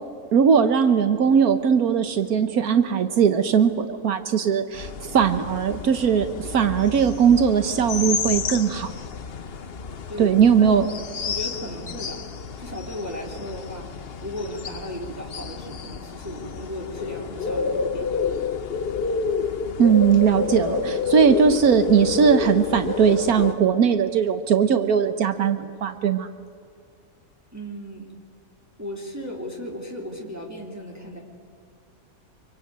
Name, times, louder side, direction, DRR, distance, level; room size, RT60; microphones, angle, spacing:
voice 1, 0.3-8.9 10.2-10.9 19.8-26.3, right 7 dB, 80° right, 9 dB, 1.5 m, -19 dB
sound 1, 4.7-23.5, left 5 dB, 45° left, 1.0 m, -30 dB
voice 2, 11.2-12.3 12.6-18.3 27.5-28.1 28.8-31.2, equal, 10° right, -1 dB, 3.1 m, -35 dB
25.5 x 24.0 x 9.3 m, 2.3 s
omnidirectional pair, 1.6 m